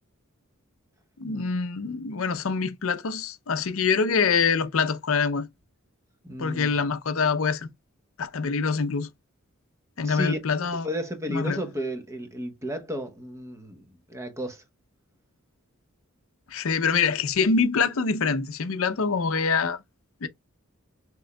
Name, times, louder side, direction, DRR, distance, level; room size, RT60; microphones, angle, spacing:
voice 1, 1.2-5.5 6.4-7.7 8.2-9.1 10.0-10.9 11.3-11.6 16.5-19.8 20.2-20.3, left 5 dB, 70° left, 0.6 m, -25 dB
voice 2, 6.2-6.7 10.0-10.4 10.8-13.8 14.1-14.6, equal, 15° right, 0.9 m, -33 dB
6.2 x 3.0 x 2.2 m
head